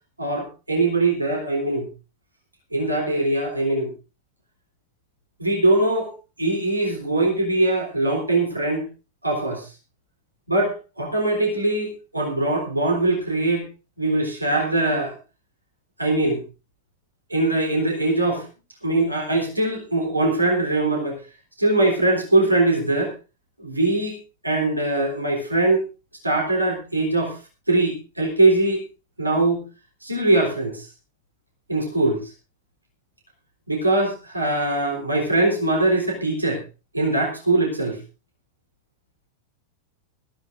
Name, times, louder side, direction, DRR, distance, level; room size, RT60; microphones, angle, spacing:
voice 1, 0.2-1.9 2.7-3.9 5.4-6.1 6.4-8.8 9.2-9.7 10.5-13.6 14.0-15.2 16.0-16.4 17.3-18.4 18.8-21.2 21.6-23.1 23.6-24.2 24.4-25.8 26.2-27.3 27.7-28.8 29.2-29.6 30.0-30.9 31.7-32.2 33.7-36.6 36.9-38.0, right 2 dB, 85° right, 1 dB, 3.6 m, -21 dB
20.5 x 14.5 x 2.6 m, 0.30 s
figure-of-eight pair, 90°, 0 cm